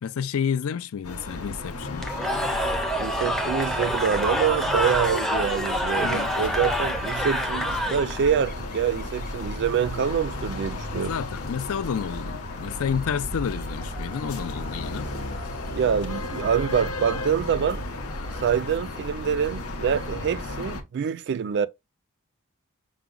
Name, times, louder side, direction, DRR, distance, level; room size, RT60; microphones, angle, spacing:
voice 1, 0.0-2.1 6.0-6.3 10.9-15.1, left 7 dB, 70° left, 0.4 m, -30 dB
sound 1, 1.0-20.8, left 1 dB, 85° left, 0.9 m, -35 dB
sound 2, 1.8-20.8, left 2 dB, 40° left, 0.9 m, -40 dB
Cheering / Crowd, 2.0-8.3, equal, ahead, 0.5 m, -27 dB
voice 2, 3.0-11.2 15.1-15.2 15.7-17.8 18.4-21.7, right 7 dB, 55° right, 0.3 m, -26 dB
5.8 x 2.1 x 3.7 m
head